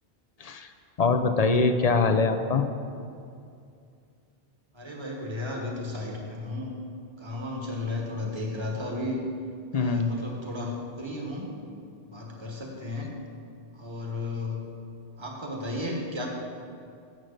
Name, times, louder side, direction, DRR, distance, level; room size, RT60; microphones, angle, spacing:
voice 1, 1.0-2.6 9.7-10.1, left 4 dB, 50° left, 8 dB, 0.5 m, -23 dB
voice 2, 4.7-6.7 7.2-9.2 9.7-11.5 12.1-13.1 13.8-14.6 15.2-16.3, left 2 dB, 25° right, 0 dB, 1.4 m, -34 dB
9.0 x 7.4 x 6.4 m, 2.4 s
omnidirectional pair, 1.0 m